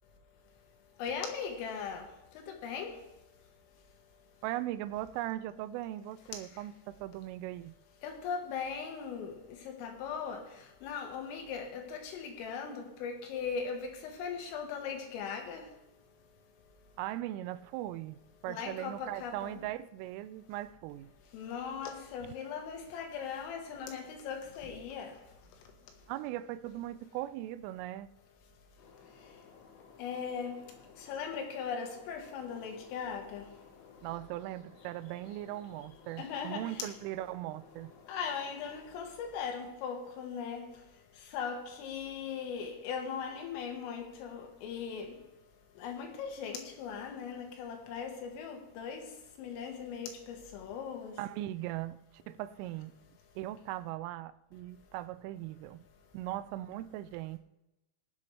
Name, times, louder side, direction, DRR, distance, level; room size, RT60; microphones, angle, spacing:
voice 1, 1.0-2.0 2.4-3.0 8.0-9.4 9.8-10.4 10.8-15.6 18.5-19.6 21.3-25.1 30.0-30.6 31.1-33.5 36.2-36.9 38.1-40.7 41.3-45.1 45.8-49.0 49.4-51.1, left 6 dB, 85° left, 3 dB, 4.0 m, -39 dB
voice 2, 4.4-7.8 17.0-21.1 26.1-28.1 34.0-37.9 51.2-52.0 52.3-52.9 53.4-55.8 56.1-57.4, right 14 dB, 85° right, 14 dB, 3.1 m, -39 dB
sound 1, 28.8-39.8, left 5 dB, 65° left, 3.8 m, -57 dB
21.0 x 7.7 x 3.3 m, 0.93 s
omnidirectional pair, 5.8 m